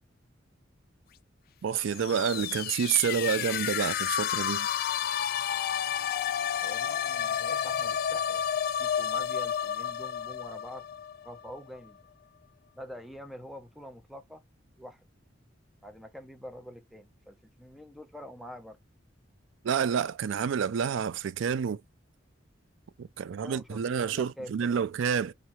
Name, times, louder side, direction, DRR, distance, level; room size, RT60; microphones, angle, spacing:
voice 1, 1.6-4.7 19.6-21.8 23.0-25.3, right 7 dB, 70° right, 0.4 m, -29 dB
sound 1, 1.8-11.6, left 9 dB, 50° left, 0.3 m, -31 dB
voice 2, 6.6-8.5 8.8-10.8 11.2-12.1 12.8-14.4 14.8-15.1 15.8-18.8 23.3-24.9, equal, ahead, 0.6 m, -46 dB
3.5 x 3.4 x 3.0 m
head